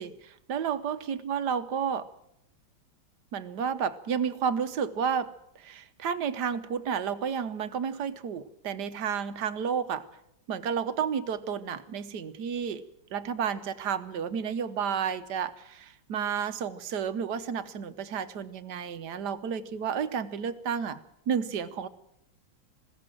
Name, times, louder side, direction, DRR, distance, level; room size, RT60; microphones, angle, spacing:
voice 1, 0.0-2.1 3.3-5.3 5.6-10.0 10.5-12.8 13.1-21.0 21.3-21.9, right 7 dB, 65° right, 13 dB, 1.4 m, -31 dB
21.0 x 16.5 x 7.6 m, 0.80 s
omnidirectional pair, 2.1 m